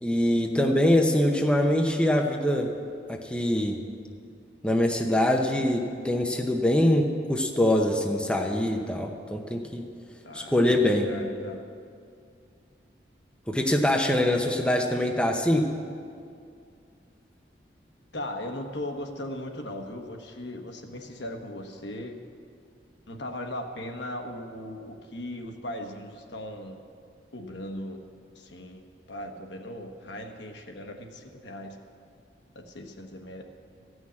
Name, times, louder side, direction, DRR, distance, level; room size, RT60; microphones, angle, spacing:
voice 1, 0.0-2.7 3.1-3.8 4.6-9.8 10.3-11.1 13.5-15.7, left 1 dB, 5° left, 1 dB, 0.7 m, -24 dB
voice 2, 10.2-11.6 18.1-22.1 23.1-26.8 27.3-28.0 28.3-28.8 29.1-31.8 32.5-33.4, left 1 dB, 70° left, 3 dB, 1.1 m, -38 dB
15.0 x 6.3 x 8.6 m, 2.3 s
head